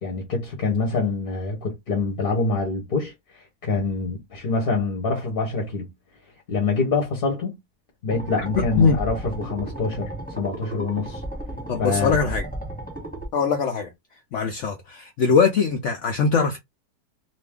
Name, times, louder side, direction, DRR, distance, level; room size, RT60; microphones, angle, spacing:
voice 1, 0.0-5.9 6.5-7.6 8.0-11.2 11.8-12.2, left 4 dB, 40° left, 0.8 m, -25 dB
sound 1, 8.1-13.3, right 1 dB, 5° left, 1.1 m, -34 dB
voice 2, 11.7-12.5 13.3-13.9 14.3-16.6, left 5 dB, 80° left, 0.6 m, -21 dB
2.6 x 2.5 x 3.4 m
omnidirectional pair, 1.9 m